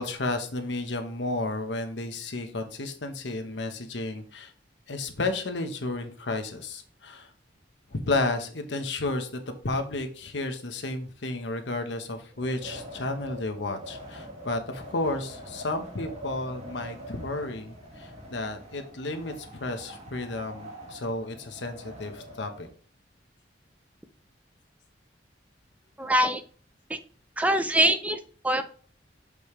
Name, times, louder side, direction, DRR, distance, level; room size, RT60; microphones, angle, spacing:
voice 1, 0.0-4.5 4.9-7.3 7.9-22.7, left 2 dB, 75° left, 6 dB, 1.1 m, -32 dB
Wind, 12.3-22.7, equal, 40° right, 1.5 m, -44 dB
voice 2, 26.0-26.4 26.9-27.0 27.4-28.6, right 1 dB, 10° right, 9 dB, 0.4 m, -24 dB
6.7 x 5.2 x 3.1 m, 0.43 s
head